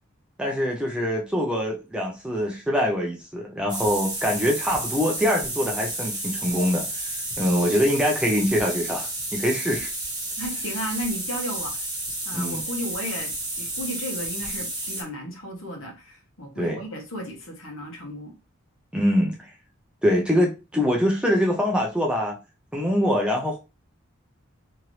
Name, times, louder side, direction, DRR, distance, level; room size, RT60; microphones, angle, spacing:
voice 1, 0.4-7.1 7.4-9.9 12.3-12.6 16.6-16.8 18.9-19.4 20.0-22.4 22.7-23.6, equal, 5° right, 0.5 m, -24 dB
sound 1, 3.7-15.0, right 2 dB, 20° right, 1.0 m, -31 dB
voice 2, 10.4-11.9 12.3-18.3, equal, 75° left, 1.1 m, -34 dB
2.9 x 2.6 x 3.1 m
head